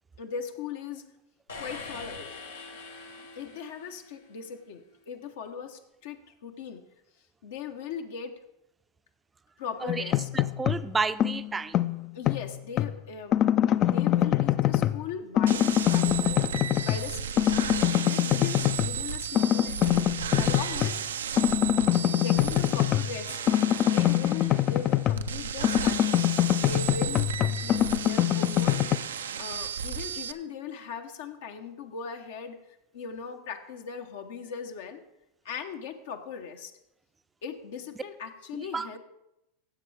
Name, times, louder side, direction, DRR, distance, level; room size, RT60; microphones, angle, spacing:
voice 1, 0.2-1.0 1.6-2.3 3.2-6.2 6.4-6.8 7.4-8.3 9.6-10.3 12.1-13.3 13.7-16.5 16.8-20.0 20.4-21.0 22.1-23.4 23.8-26.1 26.6-28.8 29.1-35.0 35.4-36.7 37.4-39.0, left 6 dB, 70° left, 5 dB, 0.9 m, -39 dB
sound 1, 1.5-4.3, left 3 dB, 90° left, 1.3 m, -43 dB
voice 2, 9.8-11.8 38.5-38.9, right 4 dB, 15° right, 13 dB, 0.5 m, -32 dB
sound 2, 9.9-10.9 11.2-12.9 13.3-15.1 15.4-17.1 17.4-19.0 19.3-21.0 21.4-25.3 25.6-29.0, left 12 dB, 40° left, 0.4 m, -24 dB
sound 3, 15.5-30.3, right 8 dB, 85° right, 0.4 m, -34 dB
16.0 x 6.9 x 3.3 m, 0.88 s
hypercardioid pair, 100°, 0 cm